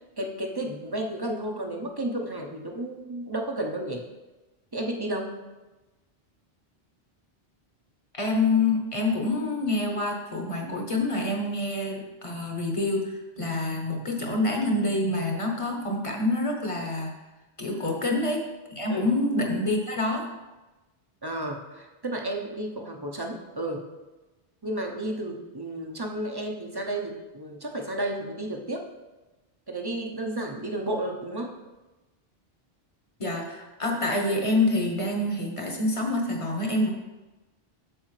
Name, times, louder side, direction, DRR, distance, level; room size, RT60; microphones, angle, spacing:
voice 1, 0.2-4.0 4.7-5.3 13.4-13.6 17.7-18.0 18.9-19.1 21.2-23.9 24.6-28.9 29.7-31.5, right 1 dB, 25° right, 2 dB, 0.7 m, -32 dB
voice 2, 8.1-17.1 17.6-18.4 18.7-20.3 33.2-36.9, left 2 dB, 30° left, 1 dB, 1.1 m, -27 dB
7.9 x 6.8 x 3.2 m, 1.1 s
omnidirectional pair, 1.1 m